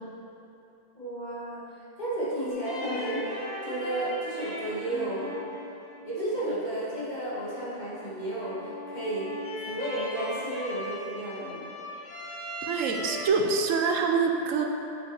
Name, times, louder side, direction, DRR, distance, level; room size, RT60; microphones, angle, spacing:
voice 1, 1.0-1.6 2.0-3.4 3.6-5.3 6.0-9.3 9.6-11.6, right 1 dB, 35° left, -9 dB, 2.0 m, -32 dB
sound 1, 2.5-13.3, left 1 dB, 60° left, 2.2 m, -39 dB
voice 2, 12.6-14.6, right 5 dB, 90° right, 3 dB, 1.1 m, -25 dB
7.2 x 6.8 x 4.3 m, 2.9 s
omnidirectional pair, 1.3 m